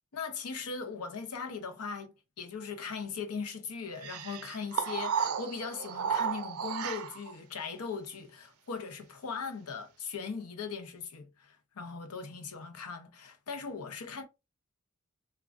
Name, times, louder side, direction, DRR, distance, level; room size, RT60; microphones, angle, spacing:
voice 1, 0.1-14.2, left 5 dB, 85° left, 0.6 m, -39 dB
sound 1, 4.0-7.4, right 7 dB, 75° right, 0.4 m, -33 dB
3.2 x 2.2 x 2.4 m
head